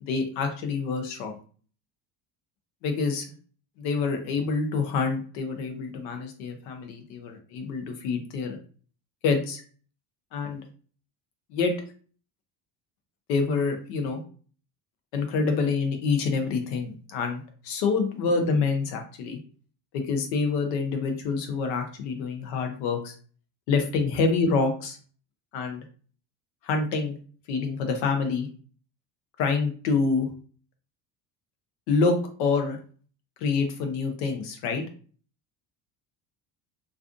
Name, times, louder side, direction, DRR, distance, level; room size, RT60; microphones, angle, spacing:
voice 1, 0.0-1.4 2.8-3.3 3.8-8.6 9.2-9.6 10.3-10.6 11.5-11.7 13.3-14.2 15.1-19.4 19.9-23.1 23.7-25.0 25.5-25.8 26.6-27.2 27.5-28.5 29.4-30.3 31.9-32.8 33.4-34.8, left 4 dB, 85° left, 5 dB, 0.7 m, -27 dB
2.4 x 2.3 x 2.4 m, 0.42 s
supercardioid pair, 75°, 48 cm